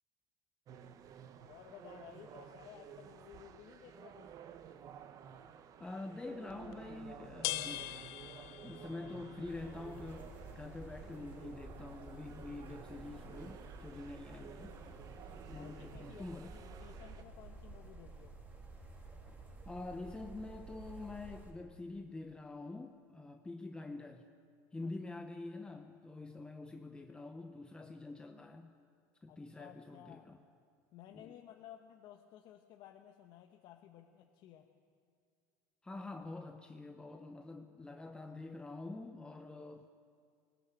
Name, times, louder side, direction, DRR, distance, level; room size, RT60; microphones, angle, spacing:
sound 1, 0.7-17.2, right 8 dB, 40° right, 1.1 m, -53 dB
voice 1, 1.4-4.4 15.5-18.4 29.3-30.4 30.9-34.7, left 11 dB, 55° left, 3 dB, 1.2 m, -56 dB
voice 2, 5.8-7.9 8.6-14.8 15.5-16.6 19.6-24.3 24.7-28.7 29.2-30.4 31.1-31.3 35.8-39.9, left 2 dB, 10° left, 5 dB, 0.9 m, -46 dB
sound 2, 6.5-17.9, left 17 dB, 70° left, 0.5 m, -48 dB
sound 3, 9.4-21.5, right 3 dB, 15° right, 3.3 m, -52 dB
20.0 x 19.5 x 8.2 m, 2.2 s
supercardioid pair, 125°, 9 cm